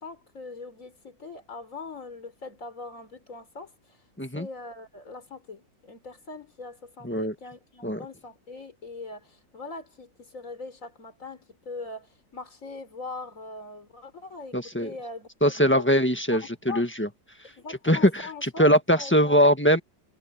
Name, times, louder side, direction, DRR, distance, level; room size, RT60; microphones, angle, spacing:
voice 1, 0.0-4.0 4.3-15.9 16.3-16.4 16.7-16.9 17.4-18.7 19.0-19.4, left 3 dB, 45° left, 4.2 m, -41 dB
voice 2, 14.5-14.9 15.4-17.1 17.8-19.8, equal, 5° left, 1.3 m, -22 dB
omnidirectional pair, 2.0 m